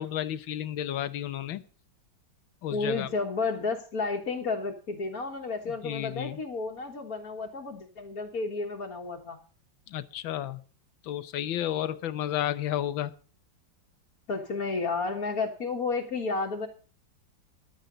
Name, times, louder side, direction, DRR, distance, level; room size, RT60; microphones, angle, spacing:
voice 1, 0.0-1.6 2.6-3.1 5.8-6.4 9.9-10.6 11.0-13.1, left 11 dB, 85° left, 1.7 m, -32 dB
voice 2, 2.7-9.4 14.3-16.7, left 4 dB, 50° left, 1.9 m, -32 dB
15.0 x 11.5 x 3.9 m
omnidirectional pair, 2.1 m